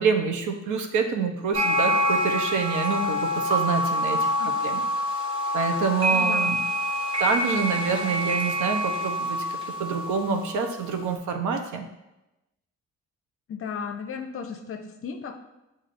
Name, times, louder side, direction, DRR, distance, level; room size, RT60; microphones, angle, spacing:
voice 1, 0.0-4.3 4.6-4.8 5.5-6.6 7.2-9.4 9.8-11.9, right 5 dB, 75° right, 4 dB, 0.7 m, -27 dB
sound 1, 1.5-10.8, equal, 15° right, 1.0 m, -26 dB
voice 2, 4.1-4.5 6.1-6.6 13.5-15.4, left 6 dB, 45° left, 5 dB, 0.6 m, -35 dB
7.2 x 2.6 x 2.5 m, 0.95 s
cardioid pair, 90°, 30 cm